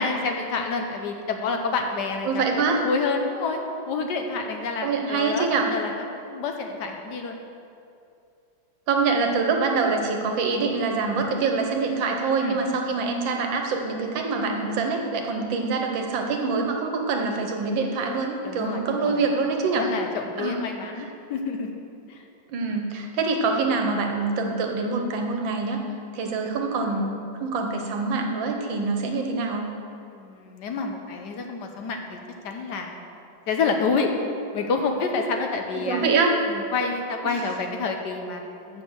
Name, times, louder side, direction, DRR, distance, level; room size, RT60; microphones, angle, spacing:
voice 1, 0.0-2.5 2.8-3.6 3.9-7.4 12.4-12.6 18.4-19.3 19.8-21.7 22.1-22.2 30.0-32.2 32.4-33.0 33.5-34.1 34.5-36.0 36.5-38.8, left 4 dB, 70° left, 3 dB, 1.3 m, -28 dB
voice 2, 2.2-2.8 4.8-5.7 8.9-19.9 20.4-20.6 21.0-21.1 22.5-25.8 26.1-29.6 35.8-36.4 37.3-37.4, right 4 dB, 80° right, 3 dB, 1.7 m, -25 dB
7.2 x 7.2 x 6.3 m, 2.5 s
omnidirectional pair, 2.1 m